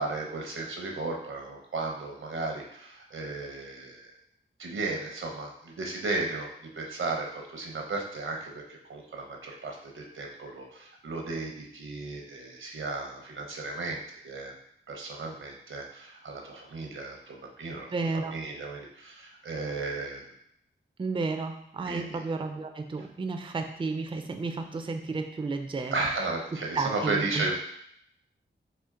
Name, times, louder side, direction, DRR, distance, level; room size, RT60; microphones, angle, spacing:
voice 1, 0.0-4.0 4.6-6.5 6.8-14.5 14.9-20.2 21.9-22.2 25.9-27.5, right 3 dB, 85° right, 1 dB, 0.8 m, -35 dB
voice 2, 17.9-18.4 21.0-26.1 26.5-27.5, right 3 dB, 25° right, 6 dB, 0.4 m, -32 dB
4.3 x 2.9 x 3.7 m, 0.71 s
wide cardioid pair, 70°, 20 cm